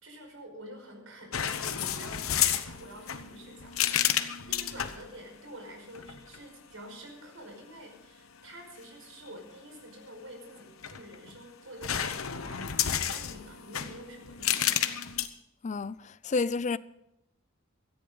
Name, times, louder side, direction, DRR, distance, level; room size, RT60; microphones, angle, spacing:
voice 1, 0.0-12.6 13.1-15.0, right 1 dB, 80° right, 5.4 m, -48 dB
sound 1, 1.3-5.0 5.9-6.4 10.6-11.4 11.8-15.3, left 10 dB, 90° left, 1.0 m, -31 dB
voice 2, 15.6-16.8, left 4 dB, 35° left, 0.4 m, -30 dB
17.5 x 14.0 x 4.0 m
head